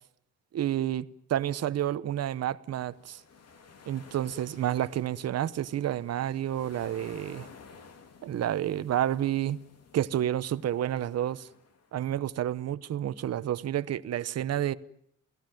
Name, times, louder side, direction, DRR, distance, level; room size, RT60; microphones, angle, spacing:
voice 1, 0.5-3.2 3.9-7.5 8.2-9.6 9.9-11.5 11.9-14.7, right 11 dB, 50° right, 1.0 m, -30 dB
sound 1, 2.8-12.0, left 5 dB, 50° left, 2.9 m, -53 dB
28.5 x 18.0 x 9.2 m
cardioid pair, 135°, 32 cm